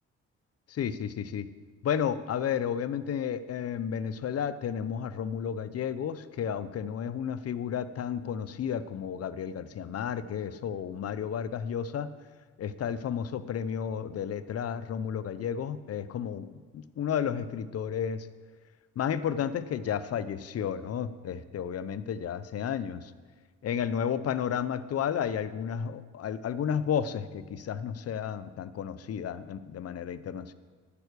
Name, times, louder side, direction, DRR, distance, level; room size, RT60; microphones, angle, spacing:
voice 1, 0.7-1.5 1.8-12.1 12.6-18.3 19.0-23.1 23.6-30.5, left 8 dB, 55° left, 14 dB, 0.7 m, -32 dB
9.9 x 9.5 x 6.7 m, 1.5 s
cardioid pair, 90°, 30 cm